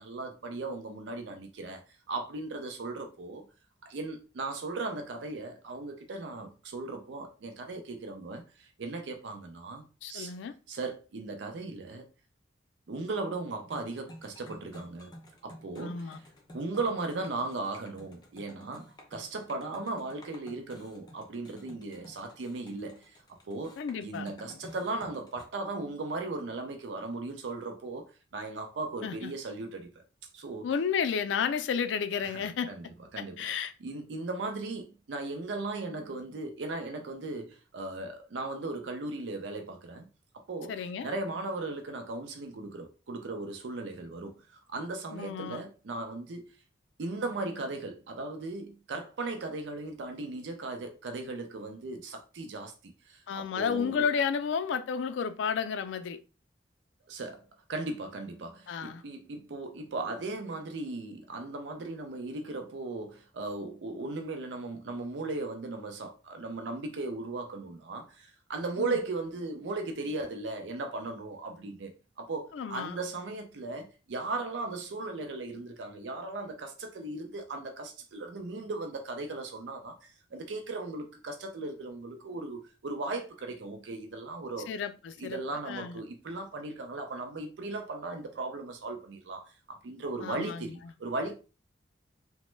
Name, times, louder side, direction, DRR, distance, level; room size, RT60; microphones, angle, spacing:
voice 1, 0.0-1.8 2.1-3.4 3.8-10.3 10.7-12.0 12.9-15.1 15.4-16.2 16.5-23.2 23.5-29.9 30.3-30.7 32.2-33.4 33.8-40.0 40.3-46.5 47.0-54.1 57.1-84.7 85.2-91.4, right 3 dB, 75° right, 0.5 m, -37 dB
voice 2, 10.0-10.5 15.8-16.2 23.8-24.3 29.0-29.3 30.6-32.7 33.2-33.7 40.7-41.1 45.1-45.6 53.3-56.2 58.7-59.0 68.8-68.9 72.5-73.0 84.7-85.4 85.7-86.0 90.2-90.8, left 6 dB, 80° left, 0.3 m, -32 dB
sound 1, 13.6-25.4, equal, 25° left, 0.6 m, -52 dB
2.9 x 2.1 x 3.1 m
head